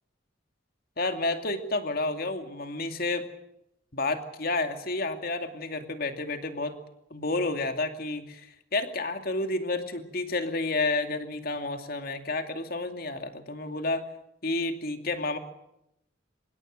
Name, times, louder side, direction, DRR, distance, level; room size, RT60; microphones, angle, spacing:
voice 1, 1.0-3.3 3.9-6.8 7.1-14.0 14.4-15.4, left 2 dB, 50° left, 7 dB, 2.5 m, -30 dB
26.0 x 21.0 x 6.6 m, 0.80 s
head